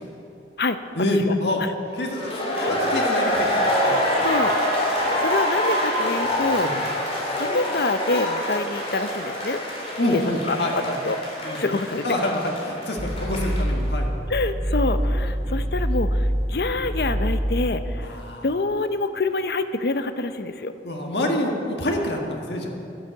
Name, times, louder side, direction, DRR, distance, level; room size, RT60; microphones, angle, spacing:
voice 1, 1.0-1.6 1.9-3.5 3.8-4.0 6.6-6.7 10.0-11.0 11.4-11.6 12.0-14.1 18.0-18.5 20.8-22.7, left 1 dB, 75° left, 1 dB, 1.8 m, -26 dB
sound 1, 2.1-13.7, equal, 35° left, 3.2 m, -25 dB
voice 2, 3.8-4.5 4.9-6.7 7.4-9.6 10.1-10.2 10.5-10.6 11.0-11.2 11.6-12.0 14.3-18.1 18.4-20.7, left 3 dB, 60° left, 10 dB, 0.6 m, -26 dB
sound 2, 13.0-18.1, equal, 35° right, 1.0 m, -25 dB
12.0 x 10.5 x 7.8 m, 2.8 s
head